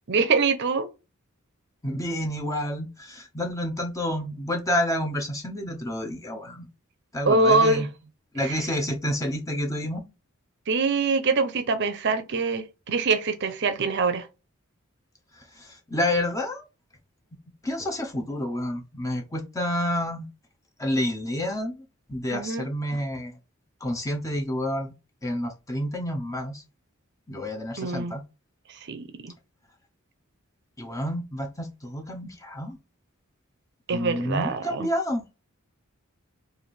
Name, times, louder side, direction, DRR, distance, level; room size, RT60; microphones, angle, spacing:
voice 1, 0.1-0.9 7.2-7.9 8.4-8.6 10.7-14.3 22.3-22.7 27.8-28.1 28.7-29.3 33.9-34.9, right 3 dB, 50° right, 0.5 m, -24 dB
voice 2, 1.8-6.7 7.1-7.9 8.3-10.0 15.4-16.7 17.6-20.3 20.8-23.4 23.8-24.9 25.2-26.6 27.3-28.2 30.8-32.8 33.9-35.2, left 1 dB, 15° left, 0.6 m, -29 dB
3.2 x 2.6 x 4.2 m
head